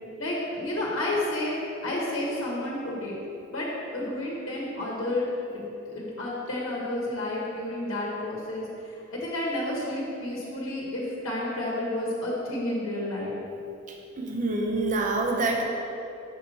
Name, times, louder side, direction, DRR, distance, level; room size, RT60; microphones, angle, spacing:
voice 1, 0.2-3.2 3.5-3.7 3.9-5.3 5.5-13.3, left 1 dB, 80° left, -4 dB, 1.1 m, -31 dB
voice 2, 14.2-15.6, right 2 dB, 35° right, 1 dB, 0.5 m, -26 dB
6.2 x 5.7 x 4.1 m, 2.9 s
head